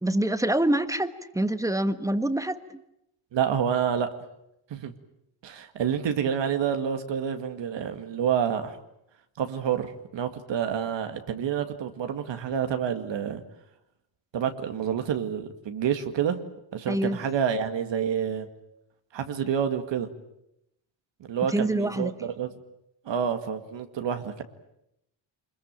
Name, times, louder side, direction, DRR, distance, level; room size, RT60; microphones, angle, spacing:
voice 1, 0.0-2.6 16.9-17.2 21.5-22.1, right 1 dB, 5° right, 11 dB, 1.3 m, -26 dB
voice 2, 3.3-4.2 4.7-4.9 5.4-8.8 9.4-13.4 14.3-16.5 16.7-18.5 19.1-20.1 21.2-22.1 22.4-22.5 23.1-24.4, right 8 dB, 65° right, 7 dB, 2.1 m, -28 dB
25.5 x 21.5 x 9.0 m, 0.82 s
cardioid pair, 115°, 47 cm